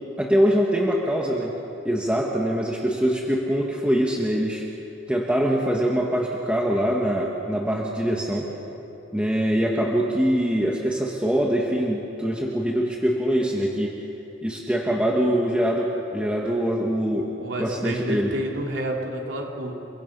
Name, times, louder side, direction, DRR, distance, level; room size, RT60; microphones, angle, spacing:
voice 1, 0.2-1.5 1.8-4.6 5.1-8.5 9.1-13.9 14.4-17.3 17.6-18.3, equal, 5° right, -2 dB, 1.7 m, -23 dB
voice 2, 17.1-19.7, right 1 dB, 65° right, -1 dB, 3.6 m, -29 dB
30.0 x 22.5 x 5.5 m, 3.0 s
head